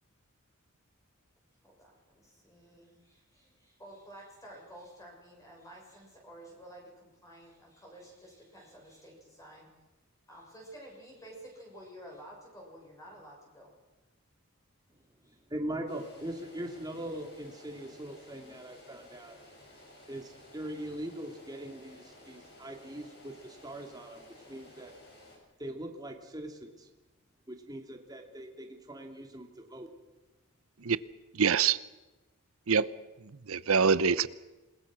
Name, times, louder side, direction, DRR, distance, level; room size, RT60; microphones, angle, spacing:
voice 1, 1.6-9.7 10.3-13.7 15.2-15.4, right 1 dB, 15° left, 6.4 m, -51 dB
voice 2, 15.5-19.4 20.1-24.2 24.5-24.9 25.6-26.9 27.5-29.9, right 1 dB, 20° right, 2.5 m, -41 dB
sound 1, 15.9-25.4, left 1 dB, 50° left, 7.0 m, -55 dB
voice 3, 31.3-31.8 32.7-32.9 33.2-34.3, right 6 dB, 75° right, 0.8 m, -25 dB
27.5 x 20.5 x 6.2 m
head